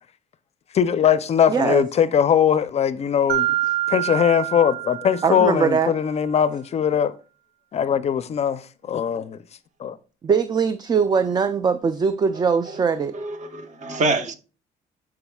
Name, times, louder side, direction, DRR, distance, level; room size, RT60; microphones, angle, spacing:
voice 1, 0.7-3.6 3.9-7.1 7.7-8.6 8.9-9.4 9.8-10.0 13.8-14.0, left 8 dB, 40° left, 0.5 m, -20 dB
voice 2, 1.5-1.8 5.2-5.9 10.2-13.1, right 6 dB, 25° right, 0.4 m, -21 dB
Mallet percussion, 3.3-5.9, right 15 dB, 85° right, 1.4 m, -26 dB
voice 3, 12.3-12.8 13.1-14.3, right 3 dB, 45° right, 1.1 m, -27 dB
13.0 x 4.8 x 2.3 m
cardioid pair, 110°, 17 cm